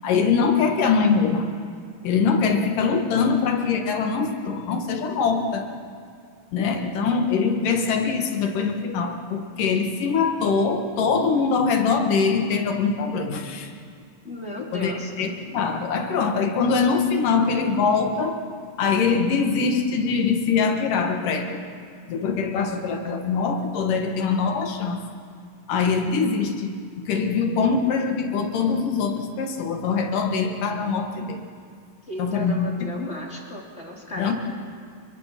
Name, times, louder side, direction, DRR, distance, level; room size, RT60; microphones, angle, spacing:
voice 1, 0.0-1.4 2.0-5.6 6.5-13.7 14.7-14.9 15.2-18.4 18.8-21.6 22.1-25.0 25.7-31.4 32.2-32.7 34.2-34.3, left 5 dB, 70° left, 4 dB, 3.3 m, -23 dB
voice 2, 14.2-15.1 32.1-34.3, left 1 dB, 20° left, -1 dB, 2.8 m, -35 dB
29.5 x 23.5 x 6.0 m, 2.2 s
omnidirectional pair, 3.9 m